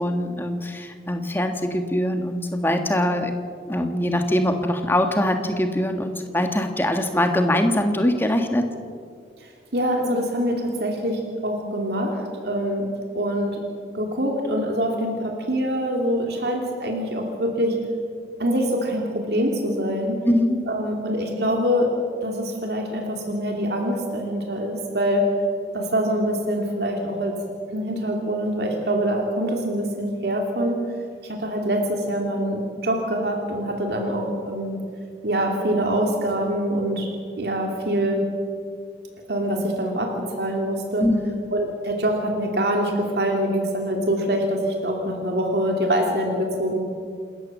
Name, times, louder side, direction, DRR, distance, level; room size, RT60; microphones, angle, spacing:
voice 1, 0.0-3.3 3.7-8.6 20.2-20.6 41.0-41.5, left 1 dB, 10° left, 5 dB, 1.6 m, -22 dB
voice 2, 9.4-12.9 13.1-13.6 13.9-17.8 18.4-20.2 20.7-21.9 22.2-25.3 25.7-27.4 27.7-30.8 31.2-34.8 35.2-37.1 37.4-38.2 39.3-41.1 41.5-46.8, equal, 70° right, 1 dB, 2.9 m, -24 dB
28.0 x 13.5 x 7.5 m, 2.2 s
head